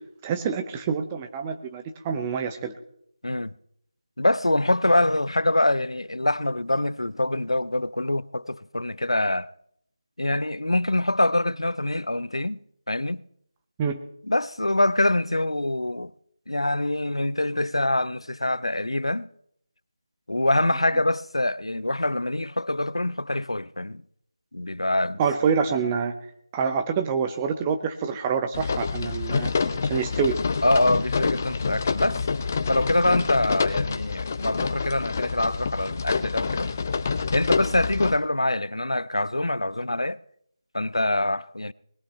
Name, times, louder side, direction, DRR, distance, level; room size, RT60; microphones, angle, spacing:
voice 1, 0.2-2.7 13.8-14.0 25.2-26.1 26.5-29.5 29.8-30.4, right 6 dB, 15° right, 0.7 m, -26 dB
voice 2, 4.2-9.5 10.2-12.6 12.9-13.2 14.3-16.1 16.5-19.3 20.3-24.0 24.5-25.2 30.6-32.2 32.7-36.7 37.3-40.2 40.7-41.7, left 1 dB, 80° left, 0.5 m, -24 dB
sound 1, 28.5-38.2, left 5 dB, 30° left, 0.8 m, -27 dB
20.0 x 15.0 x 3.4 m
figure-of-eight pair, 160°, 3 cm